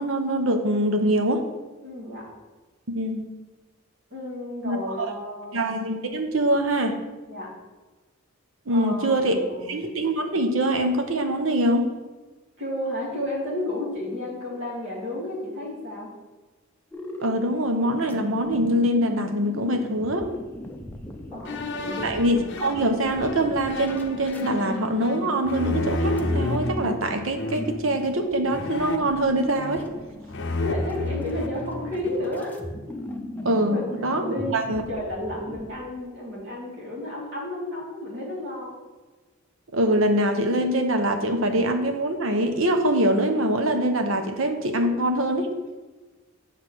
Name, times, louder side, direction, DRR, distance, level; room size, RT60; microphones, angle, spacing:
voice 1, 0.0-1.4 2.9-3.3 4.6-5.1 5.5-7.0 8.7-9.4 9.7-11.9 17.2-20.3 22.0-29.9 33.4-34.8 39.7-45.5, right 1 dB, 70° right, 6 dB, 0.8 m, -24 dB
voice 2, 1.8-2.4 4.1-5.6 7.3-7.6 8.7-9.8 12.6-16.1 21.3-22.1 30.6-32.5 33.7-38.8, left 1 dB, 55° right, -4 dB, 2.3 m, -32 dB
sound 1, 16.9-35.7, left 1 dB, 10° left, 0.6 m, -38 dB
sound 2, 21.4-26.7 27.3-27.9 28.5-30.0 30.3-32.3, left 2 dB, 55° left, 0.6 m, -31 dB
7.8 x 3.3 x 6.1 m, 1.3 s
head